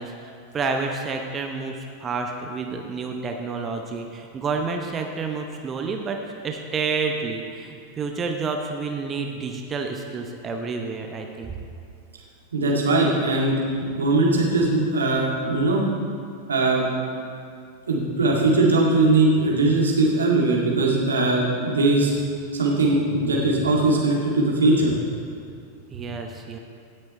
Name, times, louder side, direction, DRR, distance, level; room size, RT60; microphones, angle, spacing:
voice 1, 0.0-11.5 25.9-26.6, right 4 dB, 25° right, 3 dB, 0.9 m, -29 dB
voice 2, 12.5-13.6 14.0-15.8 16.5-16.9 17.9-22.1 22.5-24.9, right 2 dB, 70° right, -3 dB, 2.1 m, -20 dB
16.5 x 6.6 x 4.3 m, 2.4 s
figure-of-eight pair, 90°, 0 cm